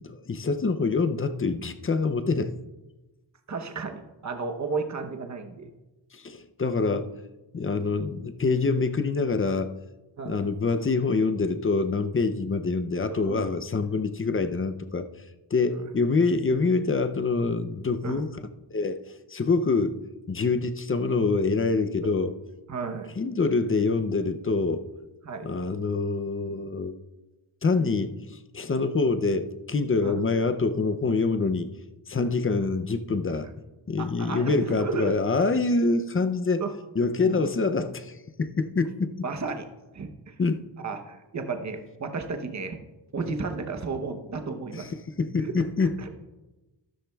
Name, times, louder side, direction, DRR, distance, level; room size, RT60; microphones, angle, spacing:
voice 1, 0.0-2.5 6.1-7.1 7.5-9.7 10.3-15.1 15.5-18.3 18.7-20.0 20.3-22.3 23.2-24.9 25.4-27.0 27.6-31.7 32.1-33.5 33.9-36.6 37.0-39.1 40.4-40.6 44.7-44.9 45.2-45.9, left 4 dB, 30° left, 9 dB, 0.5 m, -25 dB
voice 2, 3.5-5.7 7.9-8.0 10.2-10.4 13.1-13.4 15.7-15.9 18.0-18.2 22.7-23.2 25.2-25.5 30.0-30.2 34.0-35.1 36.6-36.7 37.2-37.4 39.2-39.6 39.9-40.4 40.8-42.8 43.1-44.9 45.4-45.5 46.0-46.1, right 4 dB, 35° right, 5 dB, 0.8 m, -33 dB
13.5 x 13.0 x 2.3 m, 1.1 s
wide cardioid pair, 170°, 47 cm